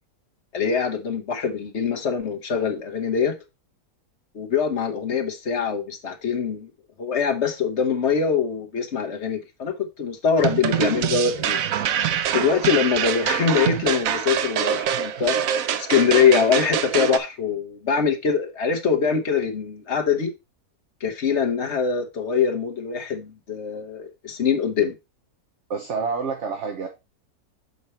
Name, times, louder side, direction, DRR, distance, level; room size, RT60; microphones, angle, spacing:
voice 1, 0.5-3.3 4.3-6.7 7.0-11.6 12.3-20.3 21.0-24.9, left 6 dB, 50° left, 1.3 m, -23 dB
sound 1, 10.4-17.2, right 9 dB, 70° right, 1.0 m, -25 dB
voice 2, 25.7-26.9, right 5 dB, 55° right, 1.2 m, -28 dB
6.8 x 4.7 x 4.3 m
omnidirectional pair, 1.6 m